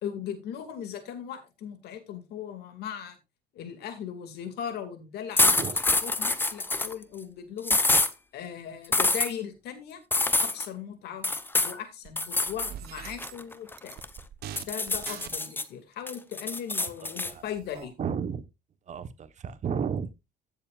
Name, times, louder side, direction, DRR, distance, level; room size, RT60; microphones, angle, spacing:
voice 1, 0.0-3.2 3.5-5.7 6.0-7.8 8.3-10.0 10.4-11.3 11.6-14.0 14.6-17.9, left 8 dB, 75° left, 2.3 m, -38 dB
sound 1, 5.4-6.9 7.6-8.1 8.9-9.3 10.1-10.7 11.2-11.8 12.2-12.7 13.1-14.2 14.6-15.6 16.1-17.3, left 2 dB, 10° left, 0.8 m, -25 dB
sound 2, 12.0-12.1 12.5-13.5 13.8-15.7 16.8-16.9 17.2-17.9, right 11 dB, 70° right, 1.1 m, -43 dB
voice 2, 17.7-18.5 18.9-20.1, right 7 dB, 45° right, 1.2 m, -33 dB
15.5 x 7.2 x 2.5 m
cardioid pair, 110°, 17 cm